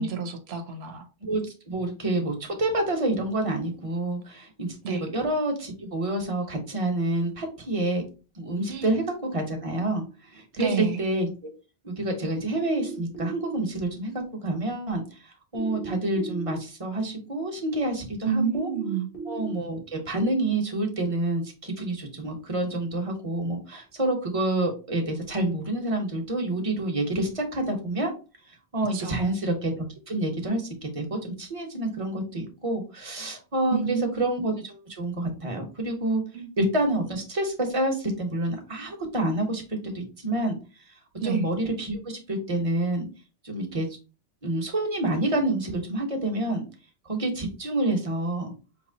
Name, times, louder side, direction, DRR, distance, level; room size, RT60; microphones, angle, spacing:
voice 1, 0.0-1.1 4.8-5.0 8.7-8.9 10.6-11.0 18.3-19.1 28.9-29.3 33.7-34.1 36.3-36.5 41.2-41.4, right 6 dB, 85° right, 1.0 m, -29 dB
voice 2, 1.2-8.0 8.3-10.0 10.3-11.3 11.8-18.7 19.3-28.1 28.7-36.2 36.6-39.6 39.9-40.6 41.2-43.1 43.4-43.9 44.4-46.6 47.1-48.5, right 1 dB, 35° right, 1.0 m, -28 dB
sound 1, 12.6-13.5 15.5-16.5 18.5-19.5, right 5 dB, 65° left, 1.5 m, -36 dB
5.2 x 2.8 x 2.7 m
omnidirectional pair, 1.0 m